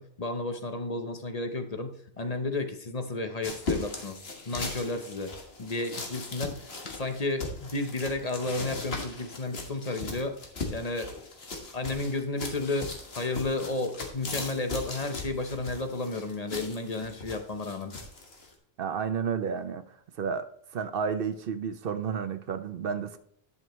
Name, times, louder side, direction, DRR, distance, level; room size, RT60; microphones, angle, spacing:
voice 1, 0.0-4.2 4.5-5.3 5.6-10.4 10.7-11.3 11.7-17.9, left 2 dB, 40° left, 0.9 m, -32 dB
sound 1, 3.4-18.5, left 3 dB, 75° left, 1.8 m, -38 dB
voice 2, 18.8-20.5 20.7-23.2, right 6 dB, 65° right, 0.8 m, -31 dB
11.0 x 6.7 x 3.1 m
omnidirectional pair, 1.1 m